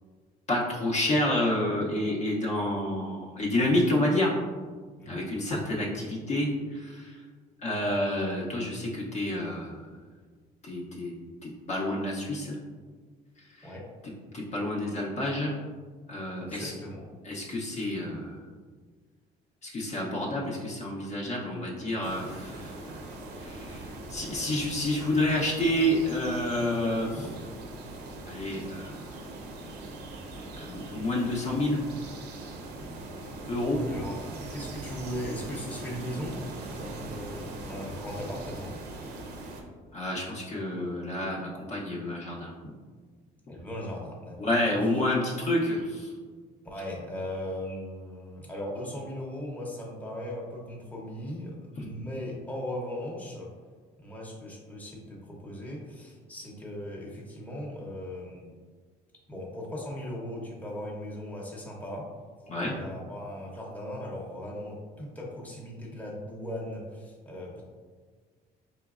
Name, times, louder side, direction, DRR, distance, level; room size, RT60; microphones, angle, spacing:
voice 1, 0.5-4.3 5.0-7.2 7.6-9.9 10.6-11.1 11.4-12.6 13.6-13.7 14.3-15.6 16.1-16.7 17.2-18.4 19.6-22.8 23.4-27.3 28.3-29.0 30.5-31.8 33.5-33.8 39.9-42.5 44.4-46.1 51.8-51.9 62.5-62.7, left 1 dB, 40° left, -3 dB, 0.7 m, -29 dB
voice 2, 16.4-17.1 33.8-34.2 34.5-36.4 36.7-38.7 43.5-44.5 46.6-53.5 54.0-58.5 59.3-62.1 62.6-67.6, left 1 dB, 10° left, -3 dB, 0.8 m, -38 dB
sound 1, 22.0-39.6, right 2 dB, 75° right, 0.6 m, -41 dB
4.4 x 3.0 x 2.4 m, 1.5 s
cardioid pair, 110°, 17 cm